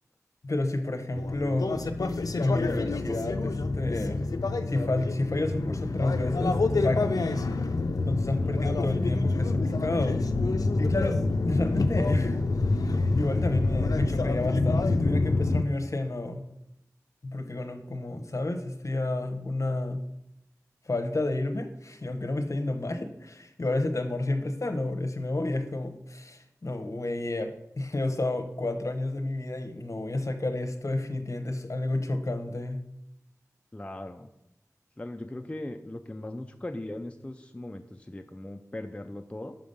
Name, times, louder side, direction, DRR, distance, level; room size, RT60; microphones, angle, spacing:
voice 1, 0.4-1.8 2.4-4.2 4.7-7.2 8.1-10.2 10.8-12.4 13.2-16.4 17.2-20.0 20.9-32.8, left 2 dB, 60° left, 6 dB, 0.8 m, -30 dB
sound 1, 1.2-15.6, left 3 dB, 80° left, 0.4 m, -27 dB
voice 2, 8.2-8.6 33.7-34.3 35.0-39.6, left 1 dB, 20° left, 4 dB, 0.4 m, -39 dB
5.9 x 5.1 x 5.4 m, 0.83 s
wide cardioid pair, 60°, 6 cm